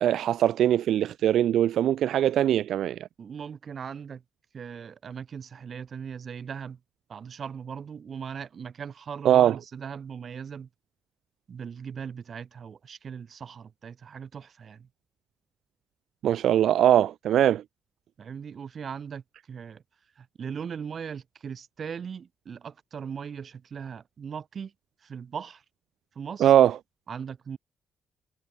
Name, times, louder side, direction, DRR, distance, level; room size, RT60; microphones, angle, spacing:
voice 1, 0.0-3.0 9.2-9.6 16.2-17.6 26.4-26.8, right 11 dB, 85° right, 0.4 m, -21 dB
voice 2, 3.2-4.2 4.5-6.8 7.1-10.7 11.5-14.9 18.2-19.8 20.2-24.7 25.0-25.6 26.1-26.5 27.1-27.6, right 7 dB, 55° right, 1.5 m, -39 dB
cardioid pair, 95°, 0 cm